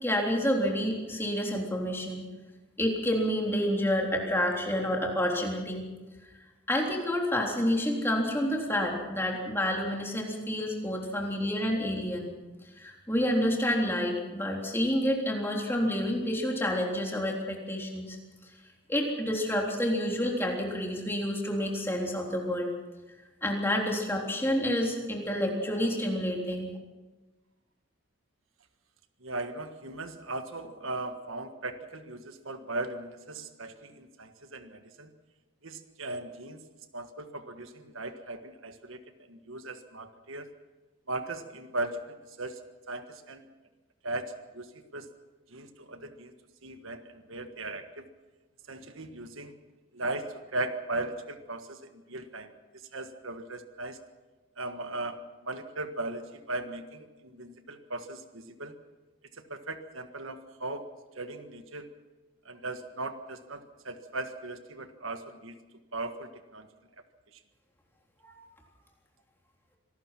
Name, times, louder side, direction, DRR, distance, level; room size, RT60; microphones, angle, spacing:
voice 1, 0.0-2.2 2.8-5.8 6.7-12.3 12.8-18.2 18.9-22.7 23.4-26.7 68.2-68.4, equal, 10° left, 0 dB, 3.6 m, -29 dB
voice 2, 29.2-35.1 35.6-36.6 36.9-39.0 39.3-40.5 41.1-42.6 42.9-43.5 44.0-45.1 45.5-46.3 46.6-48.1 48.7-49.5 49.9-54.0 54.6-55.2 55.4-58.7 59.5-61.9 62.4-65.6 65.9-66.7, right 2 dB, 75° right, 8 dB, 1.6 m, -38 dB
26.0 x 19.0 x 6.0 m, 1.2 s
head